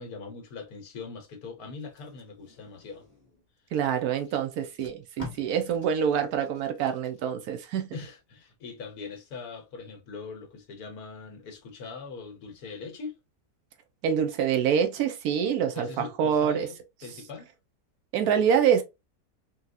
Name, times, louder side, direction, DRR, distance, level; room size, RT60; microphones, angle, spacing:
voice 1, 0.0-3.0 4.3-4.4 7.9-13.2 15.7-17.5, left 4 dB, 70° left, 1.4 m, -41 dB
Packing tape duct tape, 1.8-3.5 4.2-4.3 4.6-7.6 8.0-8.2, left 2 dB, 25° left, 1.5 m, -48 dB
voice 2, 3.7-7.9 14.0-16.7 18.1-18.8, right 8 dB, 75° right, 1.1 m, -26 dB
4.0 x 2.3 x 2.6 m
omnidirectional pair, 1.7 m